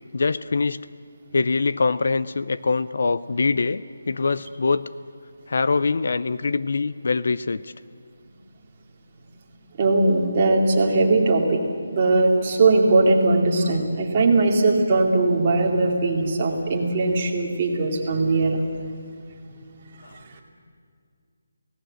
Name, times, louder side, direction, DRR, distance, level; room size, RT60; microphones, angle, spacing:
voice 1, 0.1-0.8 1.3-4.9 5.5-7.7 20.0-20.2, left 4 dB, 45° left, 14 dB, 0.5 m, -23 dB
voice 2, 9.8-11.6 11.9-18.6 20.1-20.4, right 2 dB, 20° right, -1 dB, 2.4 m, -20 dB
28.5 x 18.0 x 7.6 m, 2.3 s
hypercardioid pair, 180°, 0 cm